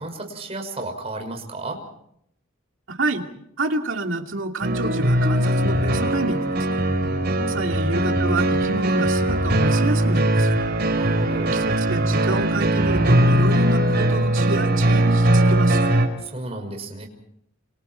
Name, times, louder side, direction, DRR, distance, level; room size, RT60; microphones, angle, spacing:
voice 1, 0.0-1.8 7.0-7.6 10.9-11.5 16.2-17.1, right 2 dB, 30° right, 3 dB, 5.9 m, -33 dB
voice 2, 2.9-3.3 3.6-6.8 7.5-10.5 11.5-15.9, right 2 dB, 65° right, 3 dB, 2.6 m, -28 dB
sound 1, 4.6-16.1, right 1 dB, 50° right, 4.9 m, -20 dB
29.0 x 27.5 x 4.6 m, 0.70 s
head